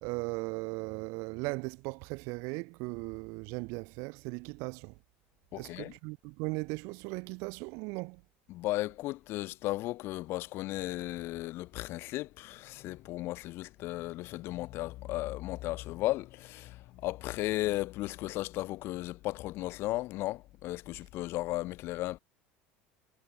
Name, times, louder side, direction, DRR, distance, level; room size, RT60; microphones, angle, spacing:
voice 1, 0.0-4.9 5.5-8.2, right 30 dB, 65° right, 0.6 m, -38 dB
voice 2, 5.5-5.9 8.5-16.8 17.0-22.2, left 18 dB, 55° left, 0.4 m, -35 dB
supercardioid pair, 125°, 5 cm